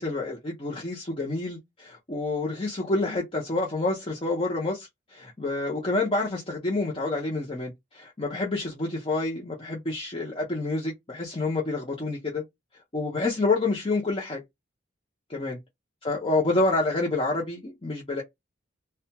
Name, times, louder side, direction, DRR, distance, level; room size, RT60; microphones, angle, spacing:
voice 1, 0.0-12.4 12.9-14.4 15.3-15.6 16.0-18.2, left 2 dB, 30° left, 0.7 m, -28 dB
2.4 x 2.2 x 2.8 m
head